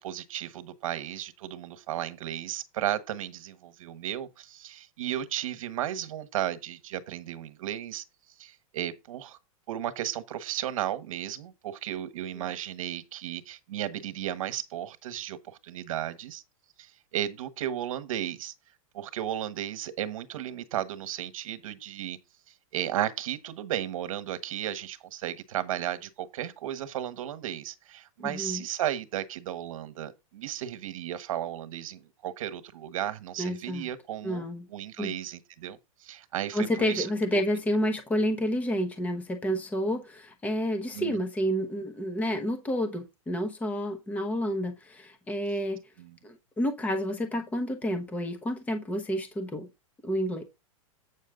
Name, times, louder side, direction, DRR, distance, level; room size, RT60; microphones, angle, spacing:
voice 1, 0.0-8.0 8.4-9.4 9.7-16.4 16.8-18.5 18.9-22.2 22.7-37.4 40.9-41.2 46.0-46.2, right 11 dB, 70° right, 1.4 m, -34 dB
voice 2, 28.2-28.6 33.4-33.9 34.2-34.6 35.0-35.1 36.5-45.8 46.2-49.7 50.0-50.4, equal, 10° left, 1.0 m, -30 dB
8.5 x 6.5 x 3.9 m
supercardioid pair, 155°, 18 cm